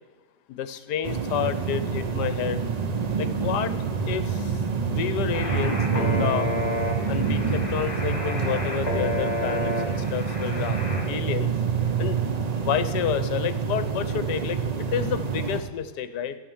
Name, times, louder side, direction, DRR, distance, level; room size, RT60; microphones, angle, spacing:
voice 1, 0.5-2.7 3.2-3.7 4.0-4.6 4.9-6.5 7.1-10.8 11.1-11.5 12.0-12.2 12.6-16.4, left 9 dB, 75° left, 12 dB, 1.3 m, -30 dB
sound 1, 1.0-15.6, right 5 dB, 50° right, 0.5 m, -27 dB
sound 2, 5.3-11.0, left 1 dB, 25° left, 1.9 m, -31 dB
12.0 x 9.4 x 7.1 m, 1.3 s
omnidirectional pair, 1.8 m